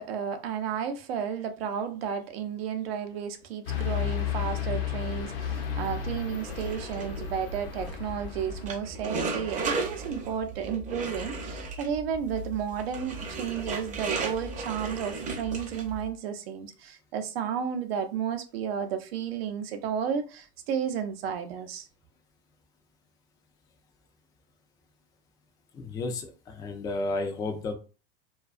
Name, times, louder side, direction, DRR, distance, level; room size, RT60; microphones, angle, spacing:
voice 1, 0.0-21.9, right 7 dB, 75° right, 0.6 m, -32 dB
sound 1, 3.7-8.7, left 8 dB, 70° left, 0.7 m, -33 dB
sound 2, 6.4-16.1, right 3 dB, 25° right, 0.6 m, -36 dB
voice 2, 25.7-27.7, left 2 dB, 15° left, 0.3 m, -32 dB
2.3 x 2.3 x 2.4 m
hypercardioid pair, 105°, 31 cm